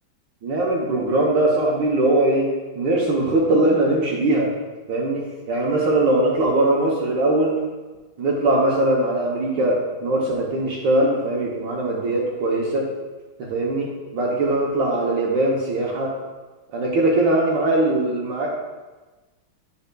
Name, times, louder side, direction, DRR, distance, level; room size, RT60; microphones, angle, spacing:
voice 1, 0.4-2.5 2.8-4.5 4.9-5.2 5.5-7.6 8.2-12.9 13.4-13.9 14.1-16.1 16.7-18.5, right 2 dB, 65° right, -3 dB, 1.4 m, -21 dB
9.2 x 5.6 x 2.2 m, 1.2 s
omnidirectional pair, 2.3 m